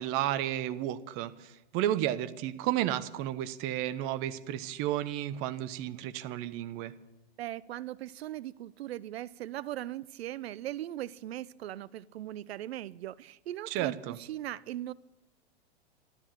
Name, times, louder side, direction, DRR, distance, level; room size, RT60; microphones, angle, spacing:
voice 1, 0.0-6.9 13.7-14.2, right 13 dB, 40° right, 13 dB, 1.1 m, -32 dB
voice 2, 7.4-14.9, right 13 dB, 75° right, 20 dB, 0.6 m, -39 dB
13.5 x 12.5 x 7.6 m, 0.97 s
hypercardioid pair, 115°, 32 cm